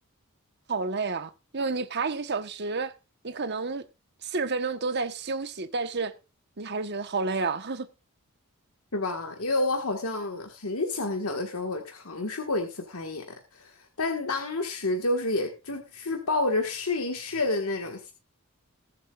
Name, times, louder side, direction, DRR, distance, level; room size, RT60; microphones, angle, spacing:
voice 1, 0.7-2.9 3.2-3.8 4.3-6.1 6.6-7.9, right 4 dB, 50° right, 1.2 m, -30 dB
voice 2, 8.9-18.1, left 2 dB, 90° left, 1.7 m, -29 dB
21.5 x 7.2 x 2.5 m
head